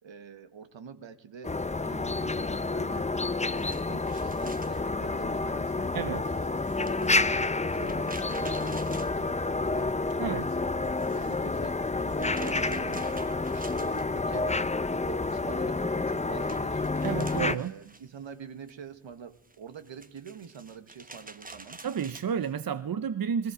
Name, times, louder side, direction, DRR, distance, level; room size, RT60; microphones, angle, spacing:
voice 1, 0.0-3.1 3.5-7.3 7.7-10.0 10.4-14.7 15.0-16.9 17.3-21.8, right 6 dB, 65° right, 9 dB, 1.7 m, -46 dB
sound 1, 1.4-17.6, left 3 dB, 15° left, 0.7 m, -29 dB
sound 2, 3.4-9.9 10.2-14.6 14.9-22.6, right 3 dB, 15° right, 1.1 m, -50 dB
voice 2, 17.0-17.7 21.8-23.5, right 7 dB, 45° right, 12 dB, 0.8 m, -31 dB
28.5 x 19.5 x 5.0 m, 0.85 s
cardioid pair, 60°, 49 cm